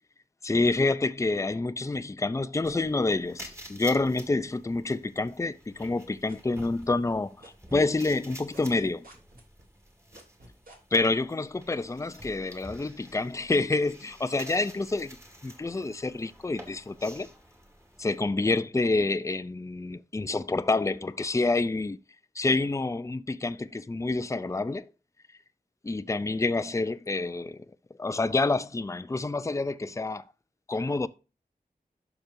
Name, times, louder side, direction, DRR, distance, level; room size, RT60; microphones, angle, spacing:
voice 1, 0.4-9.1 10.9-15.2 15.4-17.3 18.0-22.0 22.4-24.9 25.8-27.6 28.0-30.2 30.7-31.1, left 3 dB, 20° left, 0.5 m, -28 dB
sound 1, 2.6-18.2, equal, 15° right, 2.1 m, -49 dB
sound 2, 5.7-7.1 7.4-11.0, right 1 dB, 65° right, 3.2 m, -52 dB
11.5 x 6.0 x 2.7 m
wide cardioid pair, 75°, 16 cm